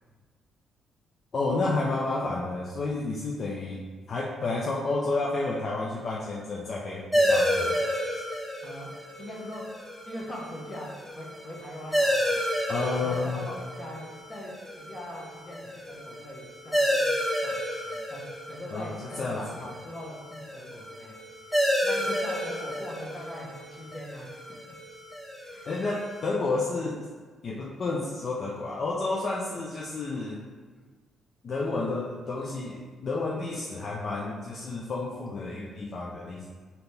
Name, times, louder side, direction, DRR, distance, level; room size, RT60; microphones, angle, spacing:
voice 1, 1.3-3.8 4.1-8.0 12.7-13.5 18.7-19.7 25.6-27.1 27.4-30.4 31.4-36.4, left 3 dB, 50° left, -3 dB, 0.5 m, -31 dB
sound 1, 7.1-26.3, equal, 5° left, 1.1 m, -31 dB
voice 2, 8.6-8.9 9.2-9.6 10.1-12.4 13.0-17.1 17.4-17.6 17.8-18.2 18.5-21.1 21.8-24.6 25.4-25.7 29.5-29.6 30.1-30.3, left 1 dB, 30° left, -3 dB, 1.1 m, -41 dB
3.9 x 2.9 x 3.3 m, 1.5 s
cardioid pair, 90°, 0 cm